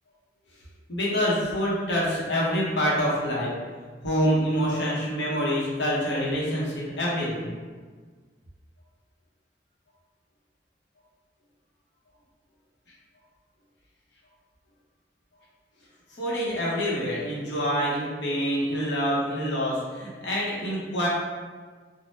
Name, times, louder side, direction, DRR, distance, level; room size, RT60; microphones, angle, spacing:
voice 1, 0.9-3.5 4.0-7.5 16.1-21.1, equal, 75° left, -5 dB, 0.9 m, -26 dB
2.7 x 2.1 x 3.4 m, 1.5 s
head